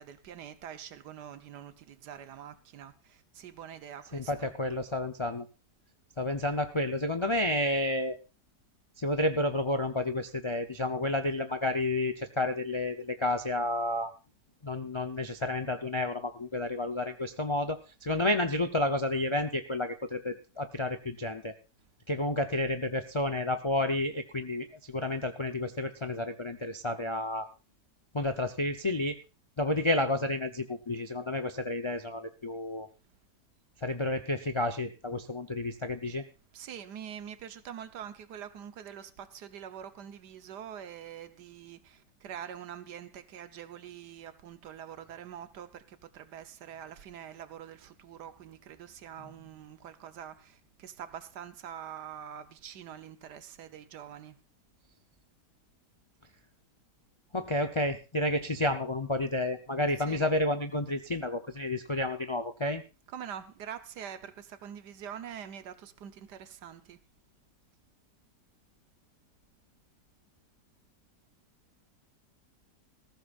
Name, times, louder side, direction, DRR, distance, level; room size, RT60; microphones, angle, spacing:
voice 1, 0.0-4.5 36.5-54.4 60.0-60.3 63.1-67.0, right 9 dB, 75° right, 1.5 m, -45 dB
voice 2, 4.1-5.5 6.2-8.2 9.0-14.1 14.6-21.5 22.1-27.5 28.1-29.2 29.6-32.9 33.8-36.2 57.3-62.8, left 1 dB, 40° left, 0.4 m, -30 dB
19.5 x 15.0 x 2.5 m
omnidirectional pair, 1.8 m